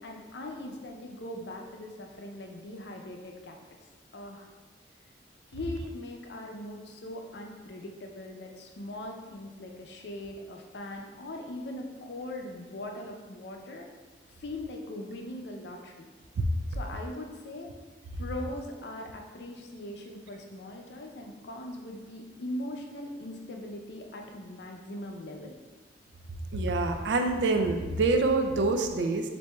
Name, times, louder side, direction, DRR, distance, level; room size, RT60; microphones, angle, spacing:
voice 1, 0.0-3.6 4.1-4.5 5.5-13.9 14.4-16.1 16.7-17.7 18.2-25.5, left 1 dB, 70° left, 2 dB, 0.5 m, -40 dB
voice 2, 26.5-29.3, right 3 dB, 80° right, 5 dB, 0.4 m, -26 dB
7.2 x 2.6 x 2.3 m, 1.3 s
head